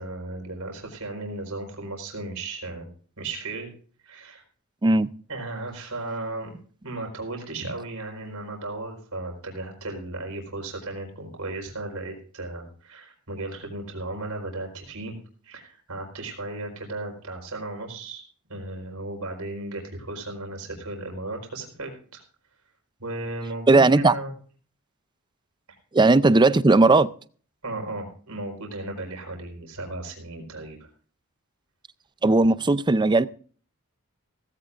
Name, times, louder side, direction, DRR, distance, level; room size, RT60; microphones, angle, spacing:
voice 1, 0.0-2.9 3.2-3.7 4.0-4.4 5.3-15.1 15.4-18.2 18.5-22.2 23.0-24.3 27.6-30.9, right 2 dB, 85° right, 4.6 m, -35 dB
voice 2, 4.8-5.1 23.7-24.1 25.9-27.1 32.2-33.3, right 2 dB, 20° right, 0.5 m, -17 dB
18.0 x 16.0 x 2.5 m
head